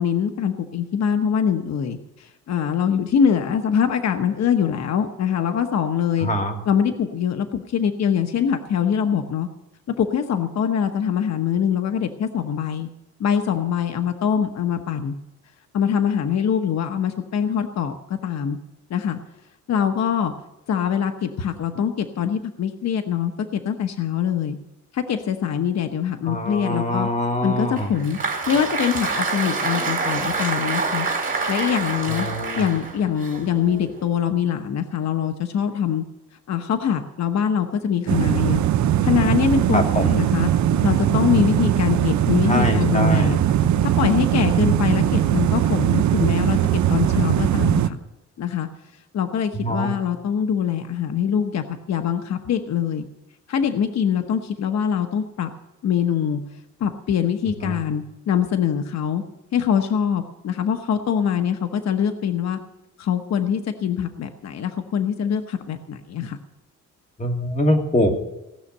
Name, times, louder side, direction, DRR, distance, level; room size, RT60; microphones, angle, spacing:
voice 1, 0.0-6.3 6.6-9.5 10.0-12.9 13.2-15.1 15.7-18.0 18.2-18.6 18.9-19.2 19.7-20.3 20.7-24.6 24.9-27.1 27.4-28.2 28.5-31.1 31.5-32.3 32.6-36.0 36.5-38.6 39.0-40.5 40.8-43.4 43.8-46.6 46.9-48.0 48.4-48.7 49.1-53.0 53.5-55.5 55.8-56.4 56.8-59.2 59.5-62.6 63.0-66.4, left 8 dB, 60° left, 7 dB, 1.1 m, -23 dB
voice 2, 6.2-6.6 26.3-27.9 32.1-32.6 39.7-40.1 42.5-43.4 49.6-49.9 57.6-57.8 67.2-68.1, equal, 25° left, 3 dB, 2.6 m, -23 dB
Applause, 27.8-34.1, right 4 dB, 30° right, 3.6 m, -27 dB
sound 1, 38.1-47.9, right 11 dB, 70° right, 0.8 m, -20 dB
18.0 x 6.5 x 9.9 m, 0.95 s
cardioid pair, 115°, 30 cm